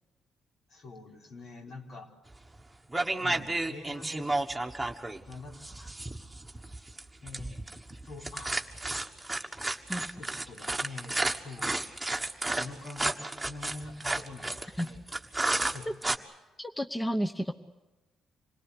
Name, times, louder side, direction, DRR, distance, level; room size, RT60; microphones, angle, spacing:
voice 1, 0.7-2.1 3.2-4.3 5.3-5.9 7.2-7.7 8.0-8.6 10.1-11.8 12.5-15.0 15.7-15.9, left 3 dB, 65° left, 1 dB, 4.2 m, -45 dB
sound 1, 2.3-2.6 2.9-16.2, right 2 dB, 10° right, 1.5 m, -32 dB
voice 2, 16.6-17.5, equal, 10° left, 8 dB, 0.9 m, -31 dB
26.5 x 18.5 x 8.3 m, 1.1 s
cardioid pair, 90°, 0 cm